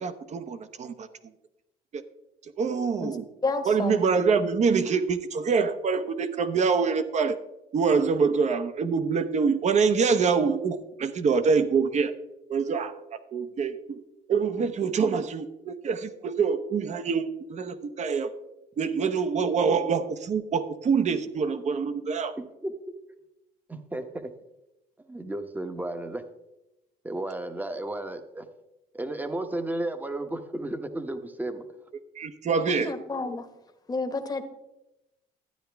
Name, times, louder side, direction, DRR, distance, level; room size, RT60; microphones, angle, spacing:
voice 1, 0.0-1.1 1.9-2.0 2.4-3.2 3.6-7.4 7.7-12.1 12.5-14.0 14.3-18.3 18.8-22.3 32.1-32.9, right 5 dB, 45° right, 11 dB, 0.9 m, -25 dB
voice 2, 3.4-4.0 32.7-33.5 33.9-34.4, left 3 dB, 25° left, 7 dB, 1.1 m, -30 dB
voice 3, 22.4-22.7 23.7-24.3 25.1-26.2 27.0-28.5 28.9-31.6, right 1 dB, 10° right, 8 dB, 1.0 m, -33 dB
12.5 x 9.6 x 3.4 m, 0.93 s
cardioid pair, 110°, 17 cm